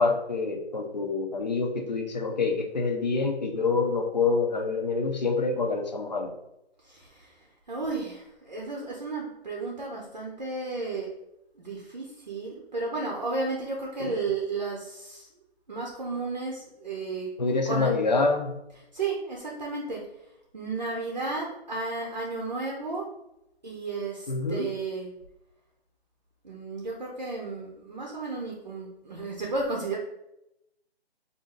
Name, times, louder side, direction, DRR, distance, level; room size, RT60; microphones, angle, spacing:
voice 1, 0.0-6.3 14.0-14.1 17.4-18.5 24.3-24.7, left 4 dB, 40° left, 3 dB, 0.7 m, -26 dB
voice 2, 6.8-11.1 11.6-15.3 15.7-18.0 18.7-20.0 20.5-23.1 23.6-25.1 26.4-30.0, right 3 dB, 40° right, -2 dB, 0.7 m, -33 dB
4.2 x 2.6 x 3.7 m, 0.86 s
hypercardioid pair, 175°, 32 cm